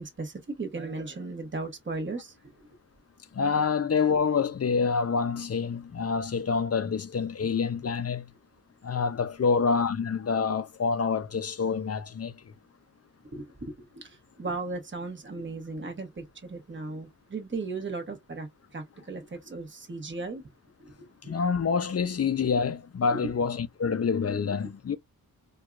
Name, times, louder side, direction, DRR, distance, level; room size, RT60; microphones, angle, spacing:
voice 1, 0.0-2.3 13.3-18.5 18.7-20.4 20.8-21.3 23.1-23.3 24.3-24.4, right 3 dB, 30° right, 1.1 m, -36 dB
voice 2, 3.3-8.3 8.8-12.4 21.2-25.0, left 5 dB, 40° left, 0.4 m, -27 dB
4.5 x 2.3 x 2.4 m
wide cardioid pair, 135°, 37 cm